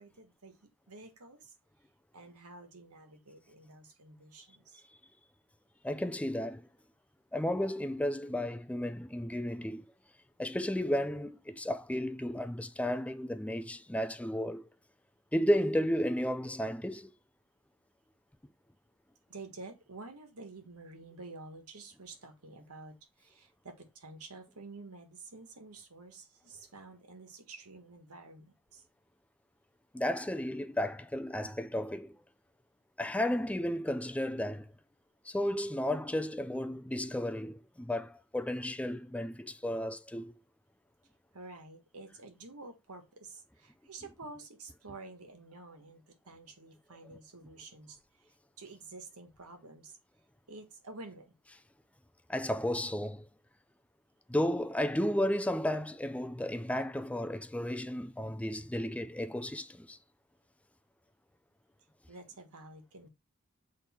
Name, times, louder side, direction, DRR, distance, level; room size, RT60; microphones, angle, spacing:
voice 1, 0.0-1.5 2.1-4.8 19.3-28.8 41.3-50.0 50.5-51.3 62.1-63.1, right 3 dB, 90° right, 1.6 m, -50 dB
voice 2, 5.8-6.6 7.3-9.8 10.4-14.7 15.3-17.1 29.9-32.2 33.0-34.7 35.3-40.3 52.3-53.3 54.3-60.0, left 1 dB, 5° left, 0.4 m, -33 dB
7.8 x 3.5 x 4.3 m
head